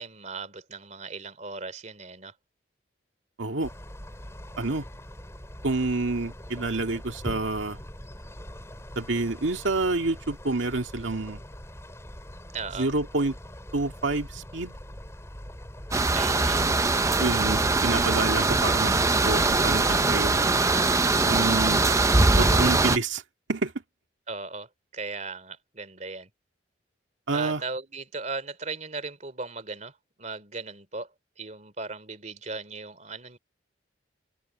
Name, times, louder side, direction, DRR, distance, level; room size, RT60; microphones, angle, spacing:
voice 1, 0.0-2.3 12.5-12.9 16.1-16.7 24.3-26.3 27.3-31.1 31.4-33.4, right 4 dB, 40° right, 3.0 m, -37 dB
voice 2, 3.4-3.7 4.6-4.8 5.6-7.8 9.0-11.4 12.8-13.3 13.7-14.8 17.2-20.5 21.2-21.8 22.4-23.2 23.5-23.7 27.3-27.6, right 3 dB, 90° right, 1.9 m, -28 dB
sound 1, 3.6-20.5, equal, 15° left, 3.5 m, -42 dB
sound 2, 15.9-23.0, right 3 dB, 15° right, 0.6 m, -22 dB
head